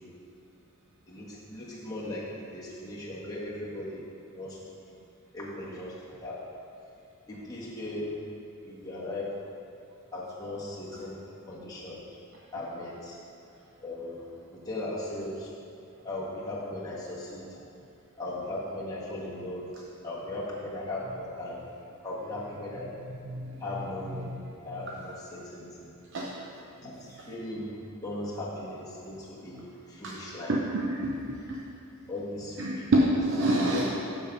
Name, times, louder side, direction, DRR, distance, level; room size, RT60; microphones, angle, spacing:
voice 1, 1.1-4.0 4.3-4.6 4.9-5.0 5.3-5.9 6.2-6.4 7.3-8.1 8.6-9.3 10.1-11.2 11.5-12.0 12.5-13.2 13.8-15.5 16.0-17.6 18.2-19.7 20.0-21.6 22.0-22.9 23.6-25.9 26.8-27.8 28.0-30.6 32.1-32.9 33.4-33.9, left 1 dB, 15° left, -7 dB, 1.7 m, -38 dB
voice 2, 30.5-31.6 32.6-33.9, right 1 dB, 60° right, -2 dB, 0.7 m, -27 dB
7.0 x 6.9 x 5.4 m, 2.6 s
head